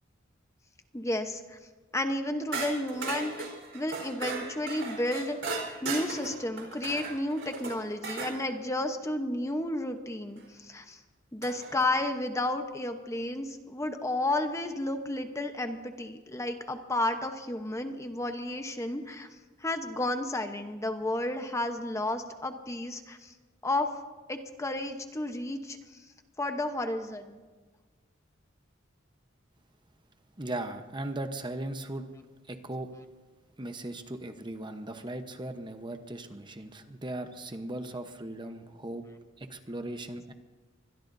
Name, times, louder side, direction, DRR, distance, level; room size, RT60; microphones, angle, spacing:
voice 1, 0.9-1.6 1.9-3.5 3.7-11.0 11.3-19.3 19.6-23.3 23.6-23.9 24.3-25.8 26.4-27.4, left 1 dB, 15° left, 6 dB, 1.0 m, -32 dB
sound 1, 2.5-8.4 10.4-10.5 11.4-11.9, right 4 dB, 65° right, 4.3 m, -37 dB
voice 2, 30.4-32.0 32.4-32.9 33.6-39.0 39.4-40.3, right 1 dB, 25° right, 7 dB, 1.0 m, -38 dB
25.0 x 21.5 x 2.7 m, 1.4 s
head